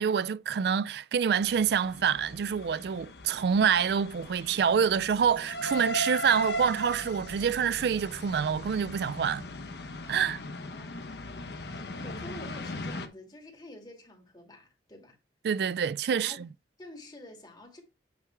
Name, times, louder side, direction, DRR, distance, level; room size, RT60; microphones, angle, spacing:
voice 1, 0.0-9.5 10.1-10.4 15.4-16.5, right 7 dB, 60° right, 0.3 m, -27 dB
sound 1, 1.4-13.1, equal, 60° left, 1.0 m, -38 dB
voice 2, 10.7-11.3 11.7-15.2 16.1-16.4 16.8-17.8, left 1 dB, 25° left, 2.3 m, -48 dB
8.6 x 3.4 x 4.6 m
head